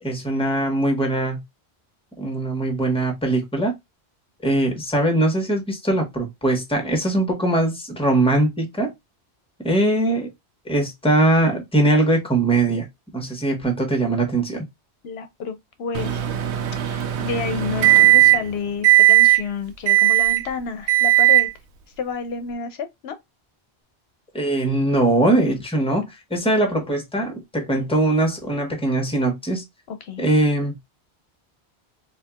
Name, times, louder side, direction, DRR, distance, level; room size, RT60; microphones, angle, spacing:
voice 1, 0.0-1.4 2.2-3.7 4.4-8.9 9.6-10.3 10.6-12.9 13.1-14.6 24.3-29.6 30.2-30.8, right 2 dB, 5° left, 1.0 m, -21 dB
voice 2, 15.0-16.5 16.8-21.5 22.0-23.2 29.9-30.3, left 5 dB, 75° left, 0.8 m, -30 dB
Microwave oven, 15.9-18.5 18.8-19.4 19.9-20.5 20.9-21.5, right 15 dB, 85° right, 0.9 m, -16 dB
4.4 x 2.7 x 2.3 m
omnidirectional pair, 1.1 m